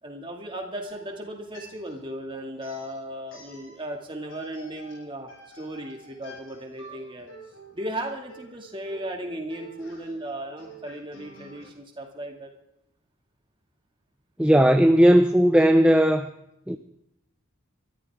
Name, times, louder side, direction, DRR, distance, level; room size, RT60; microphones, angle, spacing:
voice 1, 0.0-5.3 5.5-7.3 7.7-12.5, right 1 dB, 25° right, 2 dB, 2.3 m, -36 dB
sound 1, 0.8-2.1 2.6-4.0 4.3-11.7, right 2 dB, 70° left, 7.4 m, -49 dB
voice 2, 14.4-16.3 16.7-16.8, equal, 5° right, 7 dB, 0.5 m, -17 dB
22.5 x 14.0 x 3.7 m, 0.80 s
head